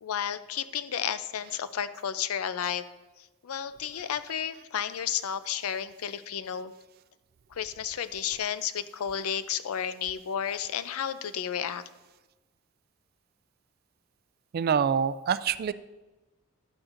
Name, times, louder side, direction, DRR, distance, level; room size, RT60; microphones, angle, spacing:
voice 1, 0.0-2.8 3.2-6.7 7.5-11.8, left 8 dB, 80° left, 13 dB, 0.5 m, -32 dB
voice 2, 14.5-15.7, right 7 dB, 45° right, 15 dB, 0.3 m, -26 dB
12.0 x 8.8 x 2.5 m, 1.1 s
head